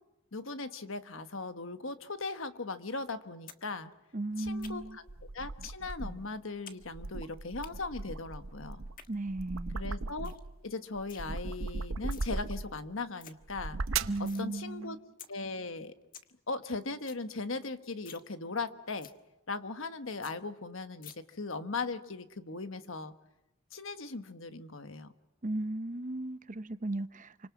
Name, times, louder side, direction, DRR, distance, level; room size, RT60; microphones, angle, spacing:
voice 1, 0.3-3.9 4.4-5.0 5.3-8.8 9.7-10.3 10.6-13.8 14.2-15.0 15.3-15.9 16.5-19.1 19.5-23.1 23.7-25.1, left 3 dB, 65° left, 1.4 m, -38 dB
sound 1, 3.5-3.6 3.9-5.0 5.6-5.8 6.1-6.8 7.1-7.7 8.7-9.1 9.6-9.7 9.9-10.0 10.2-10.5 10.7-11.2 11.9-12.3 12.7-12.8 13.0-13.3 13.7-14.5 14.8-14.9 15.2-15.3 15.7-15.8 16.0-16.3 16.6-16.7 16.9-17.2 17.6-17.7 18.0-18.3 18.6-18.7 19.0-19.2 19.6-19.7 19.9-20.0 20.2-20.3 21.0-21.1, left 8 dB, 40° left, 1.4 m, -50 dB
voice 2, 4.1-5.0 9.1-9.8 14.1-15.0 25.4-27.5, right 2 dB, 35° right, 0.8 m, -36 dB
sound 2, 4.5-6.3 6.8-10.6 11.0-12.8 13.4-14.3, right 3 dB, 65° right, 0.8 m, -38 dB
29.0 x 25.5 x 6.1 m
head